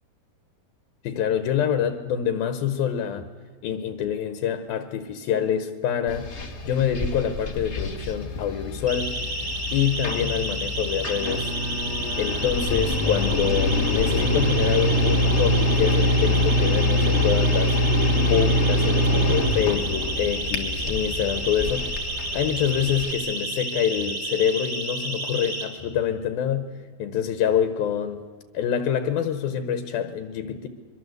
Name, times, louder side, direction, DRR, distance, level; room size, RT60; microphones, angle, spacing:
voice 1, 1.0-3.3 3.6-6.3 6.6-9.1 9.7-11.5 12.2-17.8 18.3-21.9 22.3-26.7 27.0-28.2 28.5-30.7, left 9 dB, 75° left, 10 dB, 3.0 m, -26 dB
sound 1, 6.1-23.1, left 1 dB, 30° left, 1.3 m, -25 dB
Siren, 8.9-25.6, right 1 dB, 20° right, 4.5 m, -31 dB
24.5 x 23.5 x 8.1 m, 1.5 s
omnidirectional pair, 4.4 m